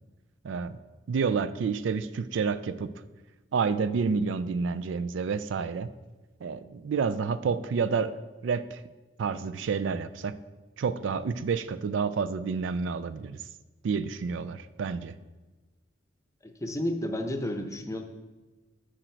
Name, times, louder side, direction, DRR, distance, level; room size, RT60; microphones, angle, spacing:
voice 1, 0.4-0.8 1.1-2.9 3.5-5.9 6.4-8.8 9.2-10.3 10.8-13.4 13.8-15.1, right 5 dB, 85° right, 14 dB, 0.4 m, -29 dB
voice 2, 16.4-18.0, left 1 dB, 15° left, 6 dB, 0.7 m, -31 dB
8.9 x 5.0 x 4.5 m, 1.2 s
head